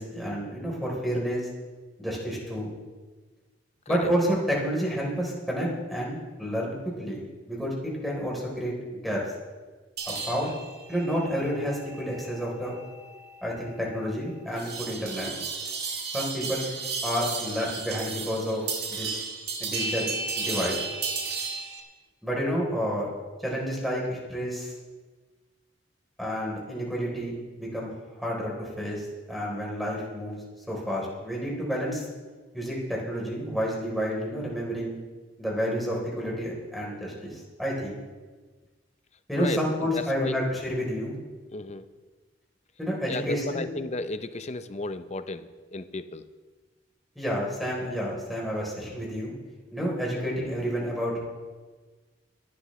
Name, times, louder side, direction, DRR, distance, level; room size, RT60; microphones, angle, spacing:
voice 1, 0.0-1.5 2.0-2.7 3.9-7.7 8.0-9.2 10.1-10.5 10.9-12.8 13.4-15.3 16.1-16.7 17.0-19.1 19.6-20.8 22.2-23.1 23.4-24.7 26.2-27.9 28.2-30.4 30.7-32.0 32.5-34.9 35.4-38.0 39.3-41.2 42.8-43.7 47.2-49.3 49.7-51.2, equal, ahead, -4 dB, 3.7 m, -30 dB
sound 1, 10.0-21.8, right 4 dB, 60° right, 2.4 m, -34 dB
voice 2, 39.4-40.3 41.5-41.8 43.1-46.2, left 2 dB, 40° left, 11 dB, 0.7 m, -34 dB
23.0 x 11.5 x 3.2 m, 1.4 s
head